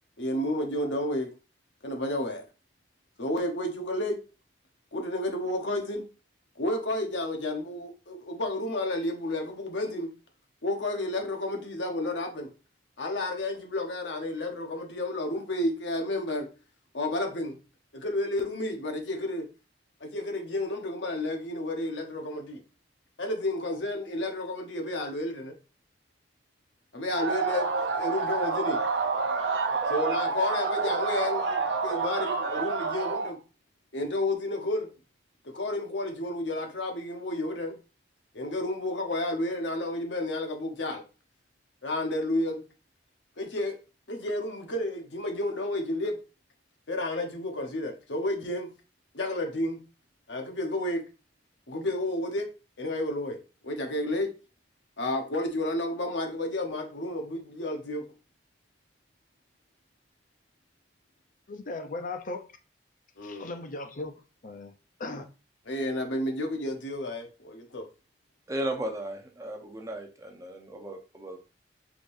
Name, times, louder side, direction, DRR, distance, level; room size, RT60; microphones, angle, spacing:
voice 1, 0.2-1.3 1.8-2.4 3.2-4.2 4.9-6.0 6.6-10.1 10.6-12.5 13.0-16.5 16.9-17.6 17.9-19.4 20.0-22.6 23.2-25.5 26.9-28.8 29.9-33.4 33.9-34.9 35.5-37.7 38.3-41.0 41.8-42.6 43.4-43.8 44.1-46.2 46.9-48.7 49.1-49.8 50.3-51.0 51.7-52.5 52.8-53.4 53.6-54.3 55.0-58.0 63.2-63.5 65.7-67.8, left 1 dB, 85° left, 1.1 m, -31 dB
sound 1, 27.1-33.3, right 4 dB, 70° right, 0.7 m, -28 dB
voice 2, 61.5-62.5 63.2-64.2 64.4-64.7 65.0-65.3, left 2 dB, 50° left, 0.6 m, -37 dB
voice 3, 68.5-71.4, right 1 dB, 20° right, 0.7 m, -35 dB
5.0 x 3.7 x 2.6 m
head